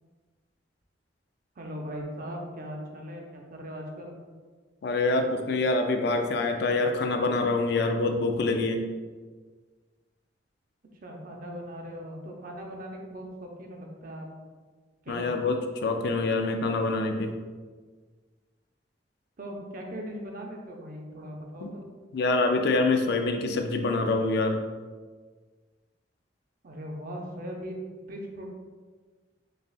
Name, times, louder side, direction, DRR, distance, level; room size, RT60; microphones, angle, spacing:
voice 1, 1.6-4.2 11.0-14.3 15.0-15.2 19.4-21.8 26.6-28.5, equal, 50° right, 1 dB, 0.6 m, -39 dB
voice 2, 4.8-8.8 15.1-17.3 21.6-21.7 22.1-24.6, left 3 dB, 60° left, 5 dB, 0.4 m, -26 dB
6.5 x 2.4 x 2.4 m, 1.4 s
head